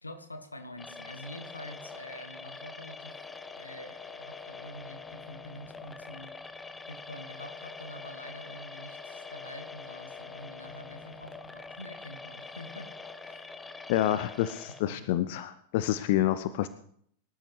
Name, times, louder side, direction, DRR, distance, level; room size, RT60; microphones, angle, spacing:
voice 1, 0.0-3.2 3.6-12.9 13.2-14.1 14.7-15.1 16.1-16.2, left 1 dB, 80° left, 8 dB, 1.6 m, -47 dB
sound 1, 0.8-14.8, left 4 dB, 10° left, 0.8 m, -44 dB
voice 2, 13.9-16.7, left 13 dB, 50° left, 14 dB, 0.6 m, -28 dB
24.0 x 12.5 x 3.3 m, 0.65 s
figure-of-eight pair, 90°, 0 cm